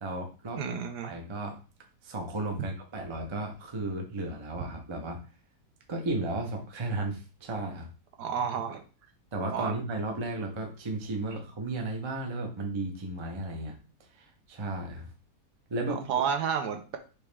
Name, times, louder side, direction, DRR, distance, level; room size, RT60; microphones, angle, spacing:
voice 1, 0.0-0.8 1.0-1.5 2.0-5.2 5.9-7.9 9.3-13.8 14.1-15.1 15.7-16.0, right 2 dB, 30° right, 2 dB, 0.5 m, -34 dB
voice 2, 0.5-1.1 8.2-8.8 9.5-9.8 15.9-17.0, right 7 dB, 75° right, 6 dB, 1.2 m, -31 dB
4.7 x 3.0 x 3.3 m, 0.34 s
omnidirectional pair, 1.8 m